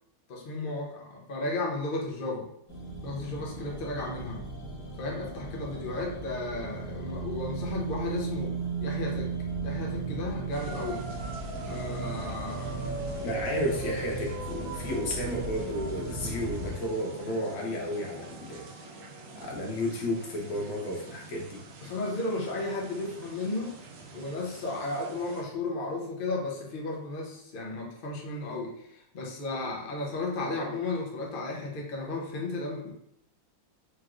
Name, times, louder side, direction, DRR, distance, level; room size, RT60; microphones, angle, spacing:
voice 1, 0.3-2.5 3.0-4.4 5.0-8.5 8.8-9.3 9.6-11.0 11.7-12.9 21.8-23.7 24.1-32.9, left 2 dB, 50° left, -2 dB, 0.6 m, -34 dB
sound 1, 2.7-16.7, right 3 dB, 20° left, 1.2 m, -36 dB
sound 2, 10.5-25.4, right 2 dB, 80° right, 1.5 m, -42 dB
voice 2, 13.2-18.7 19.3-21.6, equal, 75° left, -1 dB, 1.6 m, -32 dB
4.6 x 3.0 x 2.5 m, 0.72 s
omnidirectional pair, 2.1 m